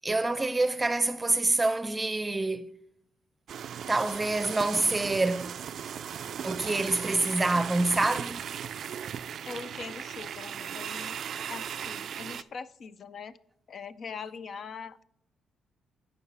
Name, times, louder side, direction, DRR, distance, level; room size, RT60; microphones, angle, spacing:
voice 1, 0.0-2.7 3.9-5.5 6.4-8.5, right 2 dB, 20° right, 0.6 m, -26 dB
sound 1, 3.5-12.4, right 8 dB, 60° right, 0.3 m, -37 dB
voice 2, 9.5-11.2 11.5-13.4 13.7-15.0, left 5 dB, 50° left, 0.4 m, -42 dB
14.0 x 5.6 x 3.3 m
cardioid pair, 90°, 0 cm